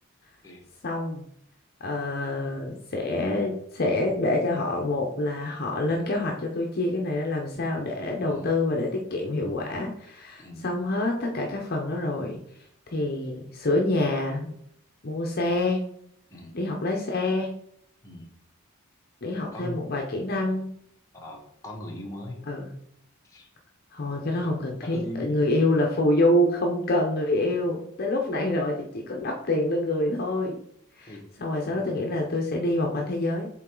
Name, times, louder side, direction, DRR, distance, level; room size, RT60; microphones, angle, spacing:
voice 1, 0.8-1.2 1.8-12.4 12.9-14.5 15.0-15.8 16.5-17.5 19.2-20.7 22.5-22.7 23.9-30.6 30.9-33.5, left 1 dB, 45° left, 0 dB, 0.7 m, -26 dB
voice 2, 21.1-22.4 23.2-23.5 24.8-25.6 31.1-31.2 31.7-31.8, left 1 dB, 15° left, -2 dB, 1.3 m, -39 dB
7.6 x 3.8 x 3.8 m, 0.71 s
head